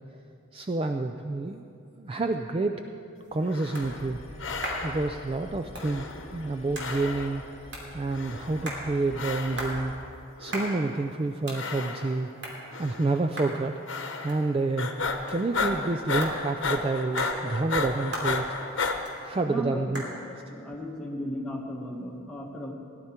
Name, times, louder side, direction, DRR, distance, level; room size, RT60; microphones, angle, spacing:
voice 1, 0.5-1.7 2.0-2.8 3.3-4.2 4.8-6.1 6.3-9.9 10.4-12.3 12.8-14.9 15.3-18.5 19.2-20.0, right 3 dB, 25° right, 5 dB, 0.3 m, -29 dB
sound 1, 2.8-22.2, right 1 dB, 55° right, 2.9 m, -42 dB
sound 2, 3.4-4.1 4.4-5.2 5.8-6.5 6.8-7.5 8.1-8.7 9.1-9.8 10.4-11.0 11.5-12.3 12.7-13.2 13.9-14.5 14.8-19.0, left 4 dB, 60° left, 1.0 m, -33 dB
sound 3, 3.8-10.0, left 1 dB, 30° left, 1.0 m, -46 dB
voice 2, 19.5-19.9 20.2-22.7, equal, 5° left, -3 dB, 1.4 m, -35 dB
17.5 x 11.0 x 4.4 m, 2.6 s
head